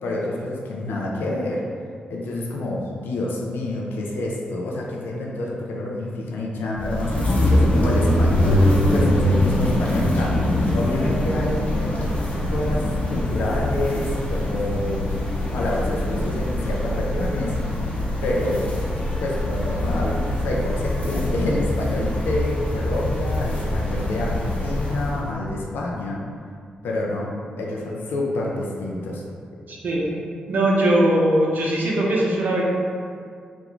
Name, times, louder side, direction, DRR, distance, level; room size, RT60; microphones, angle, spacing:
voice 1, 0.0-1.6 2.1-8.6 8.9-10.4 10.7-11.6 12.5-15.0 15.5-17.5 18.2-18.7 19.2-26.2 26.8-27.3 27.6-29.2, left 1 dB, 75° left, -3 dB, 0.4 m, -27 dB
sound 1, 6.7-25.3, left 1 dB, 40° left, 0.7 m, -23 dB
voice 2, 29.7-32.7, right 1 dB, 55° right, -4 dB, 0.6 m, -21 dB
2.4 x 2.2 x 3.0 m, 2.2 s
hypercardioid pair, 40°, 4 cm